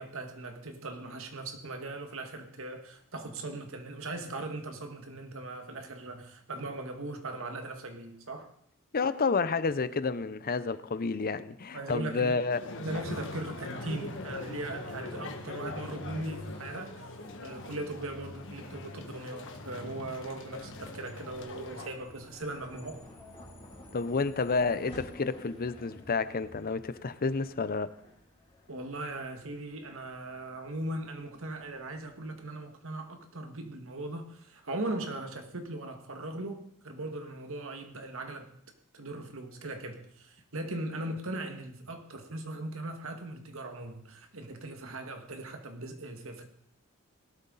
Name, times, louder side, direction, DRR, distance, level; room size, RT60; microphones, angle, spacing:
voice 1, 0.0-8.5 11.7-12.4 12.8-17.1 17.4-23.0 28.7-38.5 38.9-46.5, right 2 dB, 65° right, 1.9 m, -39 dB
voice 2, 8.9-12.6 23.9-27.9, left 4 dB, 45° left, 0.6 m, -30 dB
sound 1, 12.5-21.9, left 2 dB, 60° left, 1.8 m, -41 dB
sound 2, 13.4-32.4, left 2 dB, 10° left, 6.2 m, -60 dB
sound 3, 20.3-30.4, left 1 dB, 25° left, 6.4 m, -53 dB
18.0 x 12.5 x 4.1 m
head